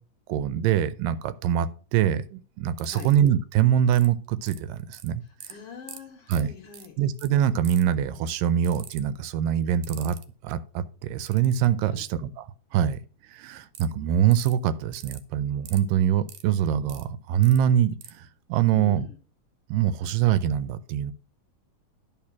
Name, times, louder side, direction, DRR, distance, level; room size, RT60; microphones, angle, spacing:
voice 1, 0.3-5.2 6.3-6.5 7.0-10.2 10.4-12.5 12.7-13.0 13.3-19.1 19.7-21.1, right 10 dB, 90° right, 2.3 m, -24 dB
sound 1, 2.8-3.3 3.9-4.1 4.5-5.1 5.4-5.5 5.9-6.0 6.3-6.4 6.7-6.9 7.2-7.3 7.6-7.9 8.6-9.0 9.8-10.2 11.3-11.7 13.7-13.9 14.3-14.5 14.9-15.2 15.7-15.8 16.3-17.0 17.4-17.6 18.0-18.1, right 10 dB, 70° right, 1.6 m, -43 dB
voice 2, 5.2-7.0 11.9-12.1 18.7-19.2, left 7 dB, 60° left, 1.6 m, -43 dB
11.0 x 4.4 x 5.9 m
omnidirectional pair, 3.8 m